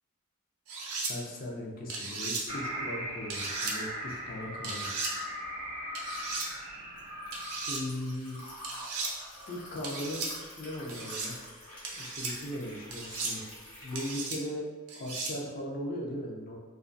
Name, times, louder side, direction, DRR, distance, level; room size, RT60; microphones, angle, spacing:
sound 1, 0.7-1.1 1.9-2.4 3.3-3.8 4.6-5.1 6.0-6.5 7.3-7.8 8.6-9.1 9.8-10.3 10.9-11.3 11.8-12.3 12.9-13.3 14.0-14.4 14.9-15.3, right 3 dB, 75° right, 0.5 m, -36 dB
voice 1, 1.1-4.9 7.6-8.4 9.5-10.2 10.6-11.4 11.9-13.4 13.8-14.7 15.0-16.6, left 1 dB, 40° left, -1 dB, 0.4 m, -38 dB
sound 2, 2.5-7.7, equal, 25° right, 0.6 m, -39 dB
Liquid, 5.9-14.1, left 1 dB, 75° left, 1.0 m, -48 dB
2.3 x 2.3 x 2.5 m, 1.2 s
head